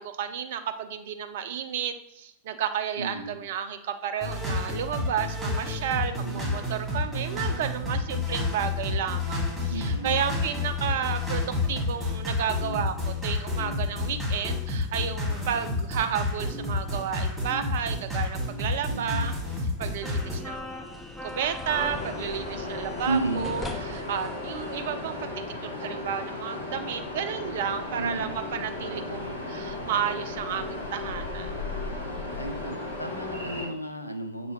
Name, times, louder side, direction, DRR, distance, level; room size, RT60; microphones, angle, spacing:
voice 1, 0.0-19.3 19.8-25.3 25.6-31.5, right 8 dB, 55° right, 9 dB, 0.4 m, -32 dB
voice 2, 3.0-3.4 6.2-6.5 9.7-10.6 11.0-11.1 18.9-19.3 23.1-23.6 28.0-28.4 28.8-29.5 32.4-34.5, right 2 dB, 90° left, 6 dB, 0.4 m, -34 dB
sound 1, 4.2-20.4, left 3 dB, 5° right, 1.6 m, -30 dB
sound 2, 20.0-25.4, left 2 dB, 10° left, 0.5 m, -40 dB
sound 3, 21.7-33.7, left 2 dB, 70° left, 1.1 m, -35 dB
6.4 x 2.7 x 3.0 m, 0.81 s
figure-of-eight pair, 90°, 0 cm